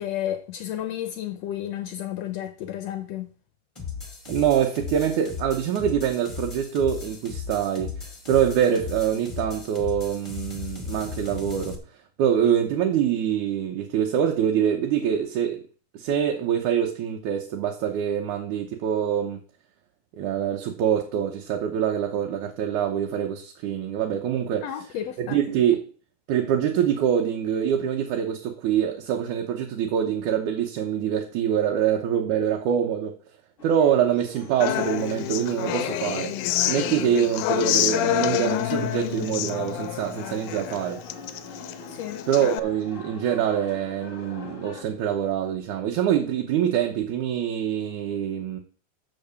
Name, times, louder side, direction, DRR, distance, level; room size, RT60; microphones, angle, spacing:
voice 1, 0.0-3.3 24.6-25.4 41.9-42.2, left 11 dB, 75° left, 1.6 m, -32 dB
sound 1, 3.8-11.8, left 6 dB, 15° left, 1.1 m, -36 dB
voice 2, 4.3-7.9 8.3-15.6 15.9-19.4 20.2-24.6 25.2-25.8 26.3-33.1 33.6-36.3 36.6-41.0 42.3-48.6, right 9 dB, 80° right, 2.4 m, -25 dB
sound 2, 33.6-44.8, left 3 dB, 35° left, 1.3 m, -45 dB
Human voice / Acoustic guitar, 34.6-42.6, left 13 dB, 90° left, 2.1 m, -27 dB
7.1 x 6.7 x 7.0 m
omnidirectional pair, 3.6 m